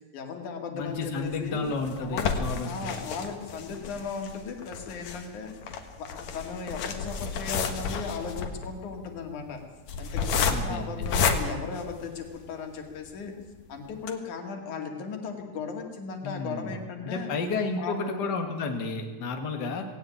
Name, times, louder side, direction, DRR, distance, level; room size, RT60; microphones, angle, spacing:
voice 1, 0.1-1.7 2.0-2.3 2.6-5.5 6.0-9.6 10.0-13.3 13.7-17.3 17.8-18.3, left 5 dB, 90° left, 4 dB, 3.8 m, -37 dB
voice 2, 0.7-2.9 10.5-11.1 16.2-16.8 17.0-19.9, left 3 dB, 40° left, 4 dB, 2.3 m, -32 dB
sound 1, 1.2-12.6 13.1-13.2 13.5-13.6 14.0-14.1, left 5 dB, 70° left, 2.7 m, -31 dB
18.5 x 17.5 x 8.8 m, 1.2 s
omnidirectional pair, 3.4 m